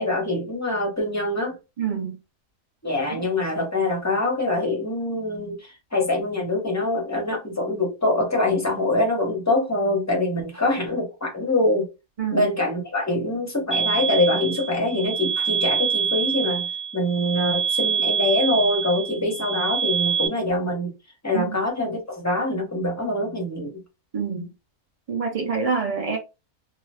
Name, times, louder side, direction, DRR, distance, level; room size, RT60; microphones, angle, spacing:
voice 1, 0.0-1.6 2.8-11.9 12.3-16.7 16.9-20.9 21.2-23.8, left 1 dB, 15° left, 0.6 m, -24 dB
voice 2, 1.8-2.2 3.1-3.2 12.2-12.5 21.3-21.6 24.1-24.5 25.1-26.2, right 5 dB, 35° right, 0.7 m, -26 dB
sound 1, 13.7-20.3, right 7 dB, 10° right, 1.1 m, -25 dB
2.7 x 2.2 x 3.2 m
omnidirectional pair, 1.5 m